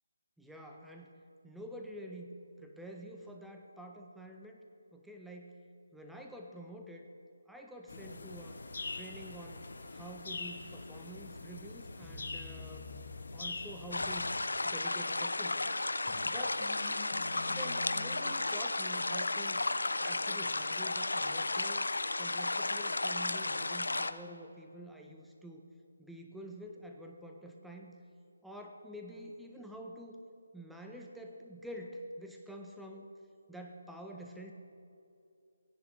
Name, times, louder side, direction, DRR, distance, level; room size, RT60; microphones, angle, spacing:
voice 1, 0.4-2.3 2.6-4.7 4.9-5.6 5.9-7.1 7.5-8.6 8.9-12.9 13.3-14.3 14.6-15.7 16.2-16.7 17.5-19.6 20.0-21.9 22.2-25.7 26.0-27.9 28.4-30.2 30.5-33.1 33.5-34.5, right 1 dB, ahead, 1 dB, 0.6 m, -48 dB
sound 1, 7.9-14.4, left 3 dB, 65° left, 1.0 m, -44 dB
sound 2, 7.9-8.6 12.0-15.1 15.6-18.2, left 3 dB, 20° left, 1.1 m, -49 dB
sound 3, 13.9-24.1, left 2 dB, 85° left, 0.5 m, -33 dB
16.5 x 10.5 x 3.1 m, 2.6 s
figure-of-eight pair, 160°, 0 cm